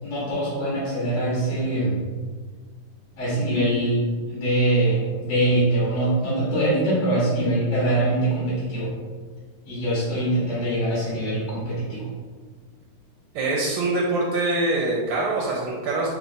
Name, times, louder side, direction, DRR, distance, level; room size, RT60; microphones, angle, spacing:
voice 1, 0.0-2.0 3.2-8.9 9.6-12.1, right 1 dB, 45° left, -8 dB, 1.0 m, -23 dB
voice 2, 13.3-16.1, right 2 dB, 85° right, -3 dB, 1.5 m, -24 dB
3.5 x 2.3 x 4.0 m, 1.5 s
omnidirectional pair, 2.4 m